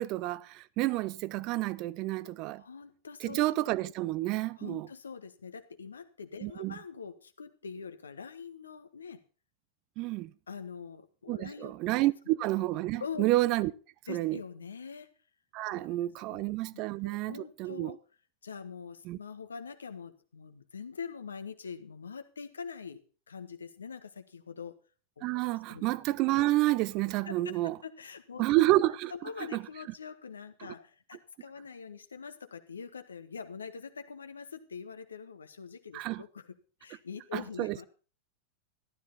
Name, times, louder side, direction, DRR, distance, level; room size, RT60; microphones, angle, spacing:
voice 1, 0.0-2.6 3.2-4.9 6.4-6.7 10.0-10.3 11.3-13.7 14.1-14.4 15.5-18.0 19.1-19.2 25.2-27.8 28.4-29.1 29.5-29.6 35.9-36.2 37.3-37.8, right 17 dB, 40° right, 0.7 m, -29 dB
voice 2, 2.6-3.4 4.6-9.2 10.5-12.0 13.0-13.3 14.1-15.1 15.9-16.0 16.3-16.5 16.7-18.0 18.4-23.0 23.3-24.7 25.2-25.3 25.5-25.8 27.2-27.6 27.8-28.4 29.1-37.9, left 6 dB, 70° left, 1.6 m, -44 dB
14.5 x 12.5 x 4.2 m
figure-of-eight pair, 90°, 0 cm